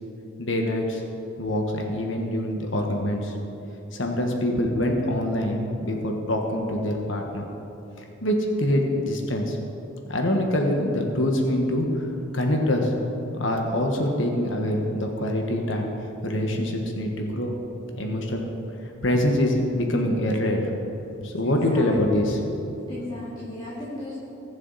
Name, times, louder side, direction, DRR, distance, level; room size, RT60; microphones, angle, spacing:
voice 1, 0.4-1.0 1.4-3.3 3.9-7.4 8.2-9.6 10.1-11.9 12.3-12.9 13.3-15.9 16.2-17.5 18.0-18.4 19.0-20.7 21.2-22.6, left 1 dB, 75° left, 2 dB, 1.4 m, -24 dB
voice 2, 21.4-22.0 22.9-24.2, left 1 dB, 25° left, -8 dB, 2.2 m, -36 dB
21.0 x 7.3 x 4.2 m, 2.9 s
head